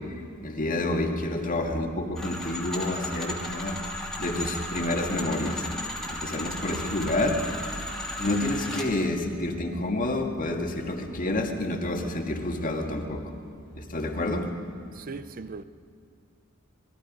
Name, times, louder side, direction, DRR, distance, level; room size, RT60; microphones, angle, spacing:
voice 1, 0.4-3.8 4.2-5.7 6.1-7.6 8.2-13.3 13.8-14.5, left 1 dB, 40° left, 2.0 m, -29 dB
sound 1, 2.2-8.9, left 1 dB, 5° left, 2.6 m, -35 dB
voice 2, 14.9-15.6, right 4 dB, 40° right, 0.5 m, -38 dB
26.5 x 20.5 x 5.3 m
head